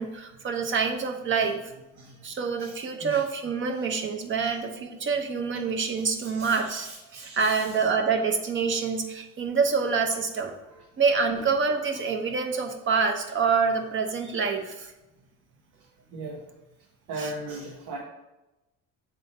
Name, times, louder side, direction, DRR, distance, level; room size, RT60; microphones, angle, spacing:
voice 1, 0.0-1.6 2.2-10.5 11.0-14.9 17.2-17.3, right 5 dB, 35° right, 5 dB, 0.8 m, -26 dB
voice 2, 6.2-7.7 10.7-10.8 16.1-16.4 17.1-18.0, right 2 dB, 85° right, -1 dB, 1.2 m, -38 dB
7.2 x 3.9 x 4.3 m, 0.98 s
cardioid pair, 130°, 32 cm